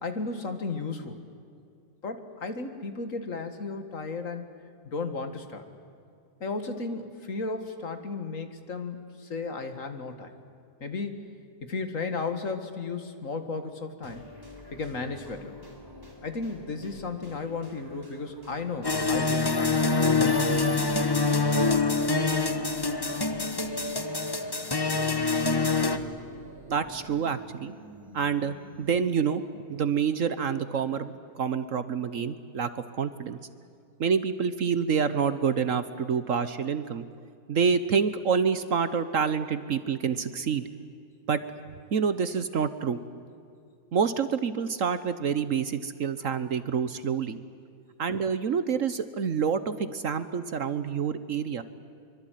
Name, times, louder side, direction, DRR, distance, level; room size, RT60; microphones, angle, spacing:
voice 1, 0.0-1.2 2.0-4.5 4.8-5.6 6.4-10.3 10.8-11.3 11.6-14.3 14.7-15.5 16.2-20.6, left 4 dB, 50° left, 8 dB, 2.2 m, -34 dB
sound 1, 14.0-29.1, left 1 dB, 15° right, 3.8 m, -47 dB
sound 2, 18.8-26.0, left 3 dB, 20° left, 0.9 m, -25 dB
voice 2, 26.7-27.7 28.1-32.7 33.0-33.4 34.0-37.0 37.5-40.7 41.3-41.4 41.9-43.0 43.9-47.4 48.0-51.6, right 6 dB, 55° right, 13 dB, 1.2 m, -27 dB
24.5 x 24.0 x 9.2 m, 2.5 s
omnidirectional pair, 1.7 m